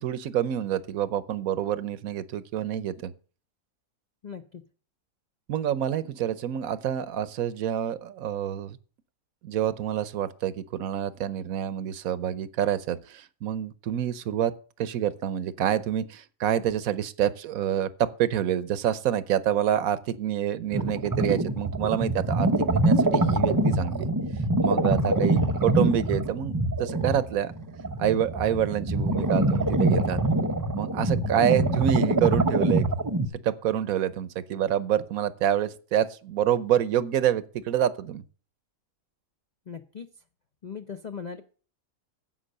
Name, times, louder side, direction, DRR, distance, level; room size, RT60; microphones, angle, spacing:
voice 1, 0.0-3.1 5.5-8.8 9.4-14.5 14.8-24.1 24.6-27.5 28.0-30.2 30.8-32.8 33.4-38.2, right 10 dB, 80° right, 1.2 m, -27 dB
voice 2, 4.2-4.6 39.7-40.1 40.6-41.4, left 6 dB, 45° left, 0.6 m, -38 dB
sound 1, 20.7-33.3, right 2 dB, 25° right, 0.4 m, -25 dB
10.0 x 7.7 x 6.5 m
omnidirectional pair, 1.5 m